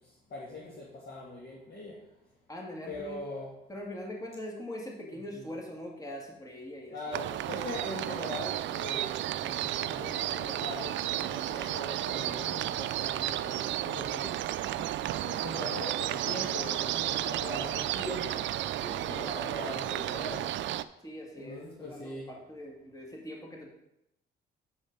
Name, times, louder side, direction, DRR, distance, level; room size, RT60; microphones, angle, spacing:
voice 1, 0.3-2.0 2.9-3.5 5.3-5.5 6.9-14.3 14.6-18.5 19.1-20.5 21.4-22.3, left 1 dB, 55° left, -4 dB, 1.8 m, -41 dB
voice 2, 2.5-3.2 3.7-7.2 18.8-19.9 21.0-23.7, left 1 dB, 15° left, -1 dB, 2.0 m, -42 dB
sound 1, 7.1-20.8, right 13 dB, 70° right, 0.4 m, -33 dB
8.3 x 5.3 x 5.3 m, 0.83 s
cardioid pair, 90°, 20 cm